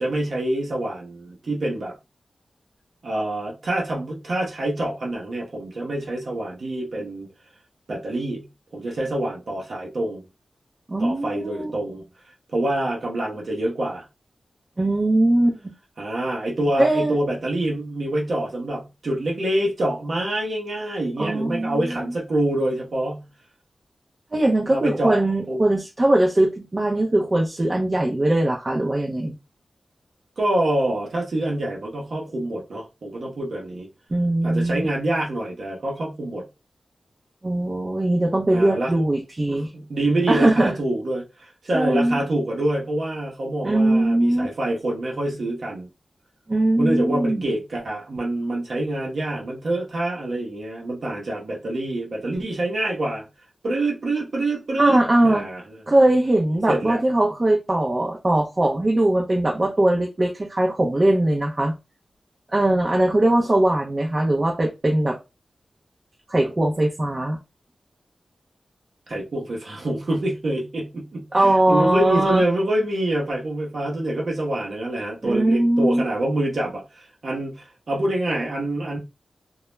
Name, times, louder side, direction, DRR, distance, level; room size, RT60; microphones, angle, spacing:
voice 1, 0.0-2.0 3.0-7.3 7.9-8.5 8.7-10.2 11.0-12.0 12.5-14.0 16.0-23.3 24.7-25.6 30.4-33.9 34.4-36.4 38.5-39.0 39.5-45.9 46.8-53.2 53.6-55.6 56.7-57.0 69.1-79.0, right 1 dB, 70° right, 0.7 m, -26 dB
voice 2, 10.9-11.7 14.8-15.7 16.8-17.1 21.2-22.1 24.3-29.4 34.1-34.9 37.4-39.7 40.3-40.7 41.7-42.2 43.6-44.5 46.5-47.4 54.8-55.5 55.9-61.7 62.5-65.2 66.3-67.4 71.3-72.4 75.2-76.0, right 1 dB, 30° right, 0.5 m, -20 dB
2.2 x 2.0 x 3.1 m
wide cardioid pair, 90°, 0 cm